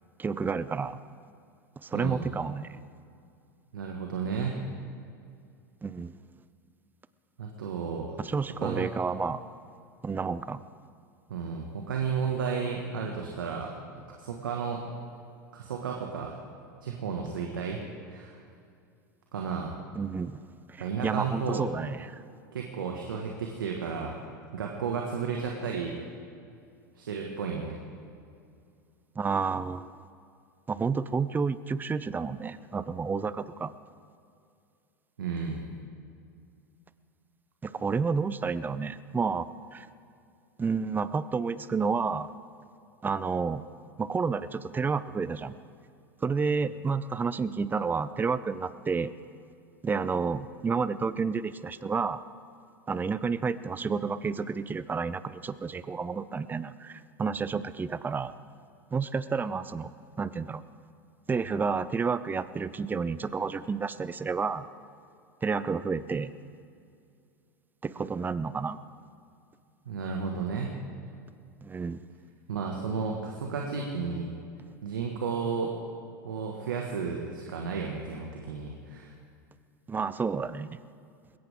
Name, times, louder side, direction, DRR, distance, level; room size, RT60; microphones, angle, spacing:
voice 1, 0.2-1.0 1.8-2.8 5.8-6.1 8.2-9.4 10.0-10.6 20.0-20.4 20.7-22.2 29.2-29.9 30.7-33.7 37.6-39.9 40.6-42.3 43.0-43.6 44.0-45.5 46.2-49.1 49.8-52.2 52.9-58.4 58.9-59.9 60.2-60.6 61.3-64.7 65.4-66.3 67.8-68.8 71.6-72.0 79.9-80.8, right 5 dB, 15° right, 15 dB, 0.6 m, -30 dB
voice 2, 1.9-2.3 3.7-4.6 7.4-8.2 8.6-8.9 11.3-13.7 14.2-14.8 15.5-16.4 16.8-17.8 18.1-18.4 19.3-19.8 20.8-21.6 22.5-24.2 24.5-26.0 27.0-27.8 35.2-35.7 69.9-70.8 72.5-74.3 74.8-75.7 76.2-79.1, right 5 dB, 85° right, 0 dB, 1.7 m, -33 dB
20.5 x 17.5 x 3.7 m, 2.4 s
hypercardioid pair, 95°, 11 cm